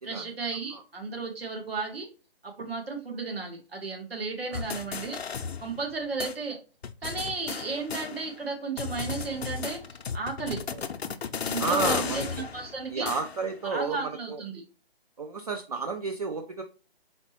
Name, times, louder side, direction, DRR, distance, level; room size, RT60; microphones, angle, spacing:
voice 1, 0.0-2.1 2.4-5.2 5.6-6.6 7.0-9.8 10.1-10.6 11.5-13.1 13.6-14.6, right 4 dB, 70° right, 2 dB, 1.7 m, -34 dB
sound 1, 4.5-5.9 6.2-6.3 6.8-8.5 8.8-13.6, left 6 dB, 80° left, 0.6 m, -34 dB
voice 2, 11.6-12.3 12.9-14.4 15.2-16.6, right 4 dB, 40° right, 5 dB, 0.4 m, -31 dB
4.3 x 4.0 x 3.0 m, 0.35 s
figure-of-eight pair, 155°, 31 cm